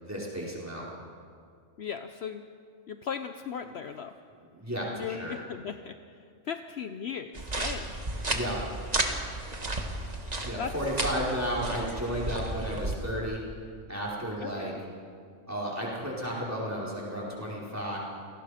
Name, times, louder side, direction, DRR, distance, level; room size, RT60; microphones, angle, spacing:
voice 1, 0.0-0.9 4.5-5.3 8.3-8.6 10.4-13.4 13.9-14.7 15.5-18.0, equal, 10° right, -5 dB, 4.7 m, -33 dB
voice 2, 1.8-2.4 2.9-4.1 4.9-5.9 6.5-7.9 10.6-10.7 14.4-14.8, left 7 dB, 60° left, 8 dB, 0.9 m, -37 dB
sound 1, 7.3-12.9, right 2 dB, 30° right, 1.7 m, -33 dB
28.0 x 19.0 x 5.1 m, 2.2 s
omnidirectional pair, 1.3 m